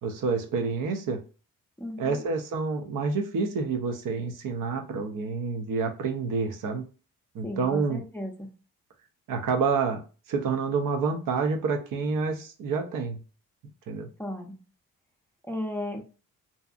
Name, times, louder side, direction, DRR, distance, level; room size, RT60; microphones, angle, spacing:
voice 1, 0.0-1.2 2.0-6.8 7.3-8.0 9.3-10.0 10.3-13.2 13.9-14.1, right 4 dB, 65° right, 5 dB, 0.6 m, -28 dB
voice 2, 1.8-2.2 7.4-8.5 14.2-14.6 15.5-16.0, left 1 dB, 5° left, 1 dB, 0.5 m, -35 dB
2.6 x 2.4 x 2.3 m, 0.35 s
supercardioid pair, 60°, 35 cm